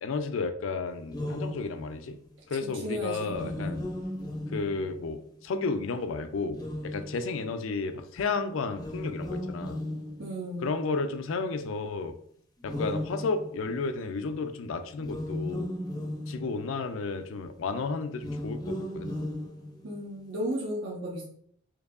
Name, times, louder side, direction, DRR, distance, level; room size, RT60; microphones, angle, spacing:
voice 1, 0.0-2.2 2.5-3.8 4.5-9.8 10.6-12.2 12.6-15.7 16.3-19.1, left 4 dB, 85° left, 8 dB, 0.4 m, -32 dB
sound 1, 1.0-2.1 3.2-5.2 6.4-7.5 8.7-10.8 12.6-14.0 15.0-16.9 18.1-20.1, left 1 dB, 20° left, 0.5 m, -36 dB
voice 2, 2.6-3.8 10.2-10.7 19.8-21.2, equal, 70° right, -3 dB, 0.7 m, -34 dB
4.6 x 2.7 x 2.4 m, 0.64 s
head